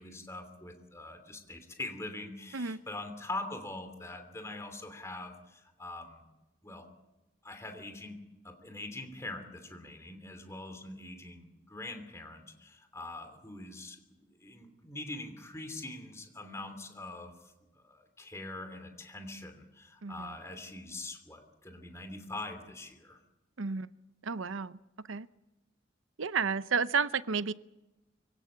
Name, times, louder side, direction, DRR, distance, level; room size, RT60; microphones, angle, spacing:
voice 1, 0.0-6.2 6.6-6.9 7.4-23.2, left 2 dB, 15° left, 7 dB, 3.0 m, -43 dB
voice 2, 20.0-20.4 23.6-23.9 24.2-24.8 25.1-25.3 26.2-27.5, right 5 dB, 85° right, 15 dB, 0.7 m, -31 dB
25.0 x 17.0 x 8.8 m, 1.0 s
head